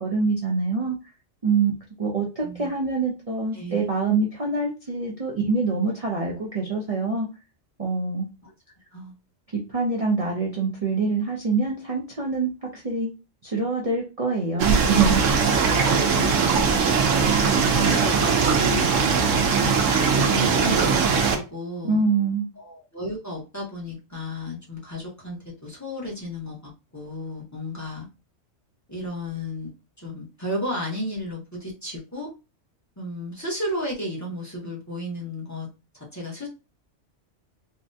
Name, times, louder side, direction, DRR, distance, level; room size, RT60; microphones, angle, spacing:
voice 1, 0.0-1.0 1.4-1.7 2.0-7.3 7.8-8.3 9.5-13.1 13.4-15.4 21.8-22.5, right 4 dB, 40° right, -2 dB, 0.6 m, -25 dB
sound 1, 14.6-21.3, right 5 dB, 90° right, 1.0 m, -20 dB
voice 2, 16.1-17.2 17.7-19.4 20.1-22.1 22.6-28.1 28.9-29.7 30.0-32.3 33.0-35.7 35.9-36.5, left 1 dB, 15° left, -3 dB, 0.9 m, -33 dB
3.7 x 2.2 x 2.6 m, 0.29 s
omnidirectional pair, 1.3 m